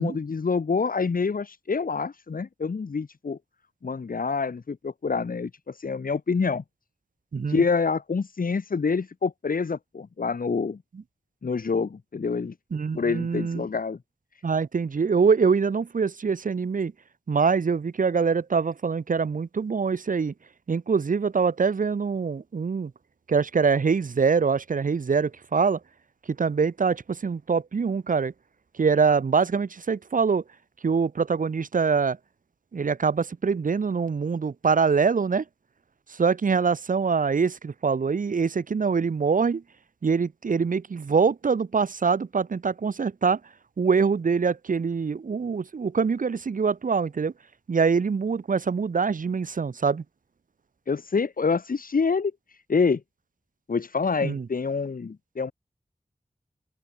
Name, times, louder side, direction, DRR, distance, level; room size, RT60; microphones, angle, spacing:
voice 1, 0.0-3.4 3.8-6.6 7.5-10.8 11.4-12.5 12.9-14.0 50.9-53.0 53.7-55.5, left 5 dB, 90° left, 2.5 m, -27 dB
voice 2, 7.3-7.6 12.7-13.7 14.4-16.9 17.3-20.3 20.7-22.9 23.3-25.8 26.4-28.3 28.8-30.4 30.8-32.2 32.7-35.4 36.2-39.6 40.0-43.4 43.8-47.3 47.7-50.0 54.2-54.4, right 5 dB, 70° right, 0.9 m, -24 dB
open air
wide cardioid pair, 80°, 14 cm